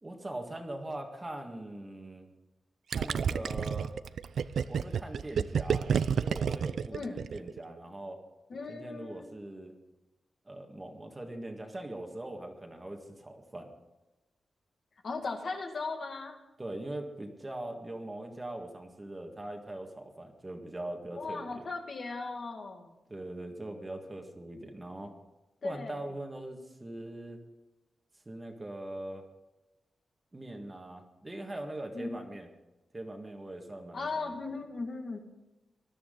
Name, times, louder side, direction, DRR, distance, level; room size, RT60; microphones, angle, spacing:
voice 1, 0.0-2.3 2.9-3.9 4.7-8.2 8.7-9.7 10.5-13.7 16.6-21.7 23.1-25.1 25.6-27.4 28.3-29.2 30.3-32.5 32.9-34.3, right 1 dB, 15° right, 3 dB, 1.7 m, -41 dB
Gurgling, 2.9-7.6, right 7 dB, 70° right, 0.5 m, -30 dB
voice 2, 6.9-7.2 8.5-9.3 15.0-16.4 21.2-23.0 25.6-26.0 31.9-32.2 33.9-35.2, left 3 dB, 45° left, 3 dB, 2.1 m, -37 dB
20.5 x 13.0 x 3.9 m, 1.0 s
wide cardioid pair, 175°, 0 cm